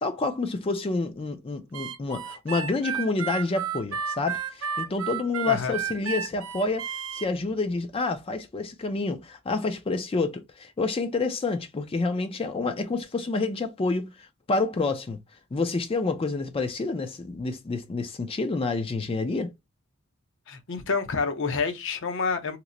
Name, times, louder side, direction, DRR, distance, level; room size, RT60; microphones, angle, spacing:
voice 1, 0.0-6.9 7.1-15.2 15.5-19.5, left 3 dB, 25° left, 0.4 m, -28 dB
Harmonica, 1.7-7.3, right 7 dB, 70° right, 0.5 m, -32 dB
voice 2, 20.5-22.6, left 4 dB, 60° left, 0.7 m, -28 dB
2.9 x 2.0 x 3.7 m
head